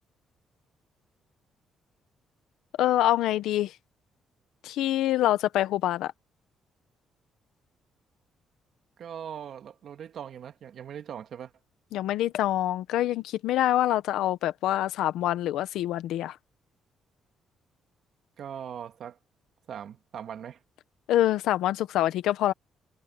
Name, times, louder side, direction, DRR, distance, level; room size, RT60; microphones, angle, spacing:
voice 1, 2.8-3.8 4.6-6.1 11.9-16.4 21.1-22.5, left 13 dB, 85° left, 1.2 m, -25 dB
voice 2, 9.0-11.5 18.4-19.2 19.7-20.6, right 9 dB, 65° right, 2.2 m, -40 dB
cardioid pair, 90°, 0 cm